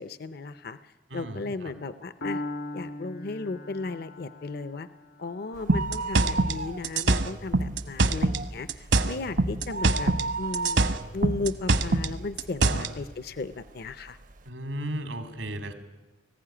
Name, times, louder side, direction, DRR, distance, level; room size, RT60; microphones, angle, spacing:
voice 1, 0.0-2.4 2.7-4.9 5.2-14.2, left 3 dB, 55° left, 13 dB, 0.6 m, -35 dB
voice 2, 1.1-1.4 12.7-12.9 14.5-15.7, right 1 dB, 90° right, 7 dB, 2.6 m, -34 dB
Piano, 2.2-10.1, left 2 dB, 75° left, 1.7 m, -41 dB
sound 1, 5.6-7.2 7.5-7.6 8.1-12.5 13.0-13.1 13.9-14.0 14.2-14.3, right 3 dB, 45° right, 0.6 m, -34 dB
sound 2, 5.7-8.4 8.7-10.3 10.5-12.9, right 2 dB, 65° right, 1.1 m, -24 dB
19.5 x 15.5 x 10.0 m, 1.2 s
head